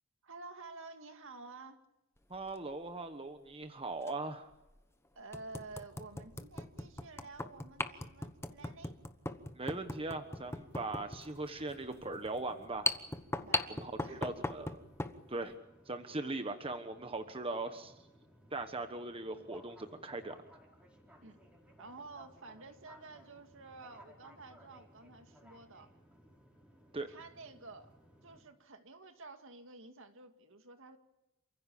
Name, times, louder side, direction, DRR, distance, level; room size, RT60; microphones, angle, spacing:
voice 1, 0.2-1.8 5.2-9.0 13.4-14.2 21.2-21.4 21.8-25.9 27.1-27.9 28.2-31.0, right 3 dB, 65° right, 6 dB, 2.3 m, -51 dB
sound 1, 2.3-2.6 4.0-4.1 4.7-4.8 5.3-15.2, left 2 dB, 10° left, 1.2 m, -39 dB
voice 2, 2.3-4.5 9.5-12.9 13.7-14.8 15.3-15.5 15.9-17.9 18.5-20.4 26.9-27.1, right 2 dB, 25° right, 7 dB, 1.2 m, -40 dB
sound 2, 9.6-28.4, equal, 5° right, 4.7 m, -61 dB
28.5 x 15.5 x 8.6 m, 0.97 s
head